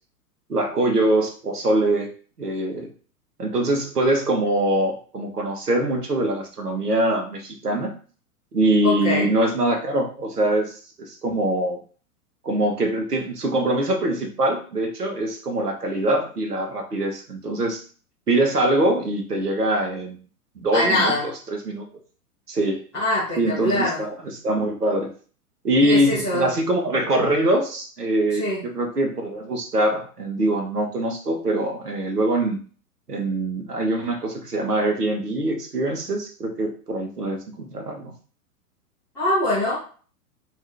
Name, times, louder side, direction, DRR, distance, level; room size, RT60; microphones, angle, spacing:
voice 1, 0.5-2.1 2.4-2.9 3.4-7.9 8.5-11.8 12.4-17.8 18.3-20.2 20.6-21.9 22.5-22.8 23.4-24.2 24.4-25.1 25.6-32.6 33.1-38.1, right 1 dB, 85° right, 3 dB, 0.9 m, -23 dB
voice 2, 8.8-9.3 20.7-21.3 22.9-24.0 25.8-26.5 28.3-28.6 39.1-39.8, left 1 dB, 5° left, -12 dB, 0.4 m, -23 dB
2.7 x 2.4 x 3.4 m, 0.41 s
figure-of-eight pair, 105°, 45 cm